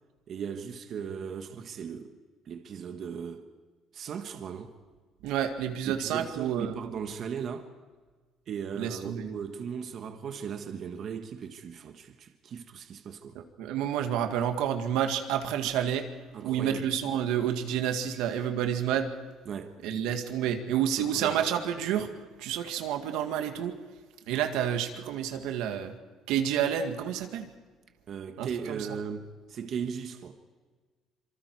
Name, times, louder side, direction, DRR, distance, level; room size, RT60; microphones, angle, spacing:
voice 1, 0.3-2.1 2.4-3.4 3.9-4.7 5.8-7.7 8.5-13.4 16.3-16.9 19.5-19.8 21.0-21.4 28.1-30.3, right 7 dB, 45° right, 1.4 m, -37 dB
voice 2, 5.2-6.8 8.8-9.3 13.6-16.1 16.4-19.1 19.8-22.1 22.4-23.7 24.3-25.9 26.3-27.5 28.4-29.0, right 9 dB, 90° right, 2.0 m, -29 dB
26.5 x 24.5 x 4.8 m
cardioid pair, 145°, 0 cm